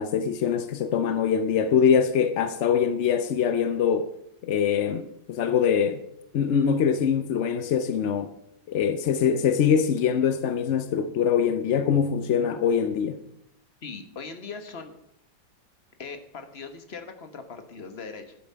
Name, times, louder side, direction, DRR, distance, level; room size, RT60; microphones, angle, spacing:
voice 1, 0.0-4.1 4.4-6.0 6.3-8.3 8.7-13.2, left 7 dB, 70° left, 0.6 m, -23 dB
voice 2, 13.8-14.9 16.0-18.3, left 4 dB, 40° left, 1.3 m, -40 dB
11.5 x 8.3 x 5.6 m
omnidirectional pair, 2.0 m